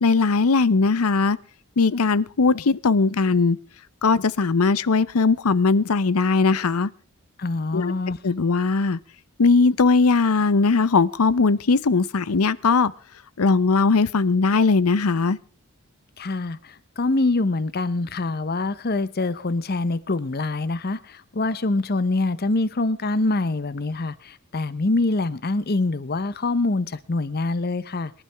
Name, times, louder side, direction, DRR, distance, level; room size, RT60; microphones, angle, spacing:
voice 1, 0.0-1.4 1.8-3.6 4.0-6.9 7.7-7.9 8.2-9.0 9.4-12.9 13.4-15.4, left 4 dB, 80° left, 0.7 m, -19 dB
voice 2, 7.4-8.2 16.2-28.1, left 2 dB, 45° left, 0.8 m, -25 dB
24.5 x 11.5 x 3.4 m
head